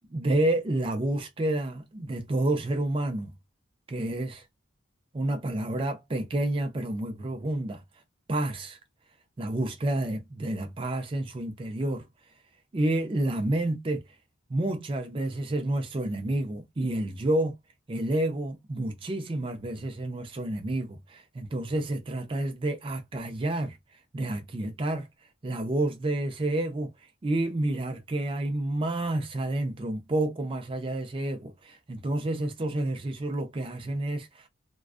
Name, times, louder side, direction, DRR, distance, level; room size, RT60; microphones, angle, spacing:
voice 1, 0.1-3.3 3.9-4.4 5.1-7.8 8.3-8.8 9.4-12.1 12.7-14.0 14.5-17.5 17.9-23.8 24.1-25.1 25.4-26.9 27.2-34.5, right 1 dB, 25° right, 0.4 m, -29 dB
2.3 x 2.3 x 2.3 m
head